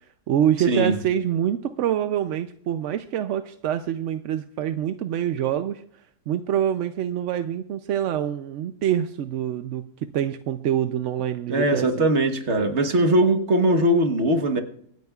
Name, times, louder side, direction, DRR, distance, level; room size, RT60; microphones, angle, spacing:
voice 1, 0.3-5.8 6.3-12.1, right 10 dB, 65° right, 9 dB, 0.8 m, -25 dB
voice 2, 11.5-14.6, right 1 dB, 50° right, 6 dB, 1.4 m, -20 dB
25.0 x 9.3 x 2.4 m, 0.65 s
omnidirectional pair, 1.6 m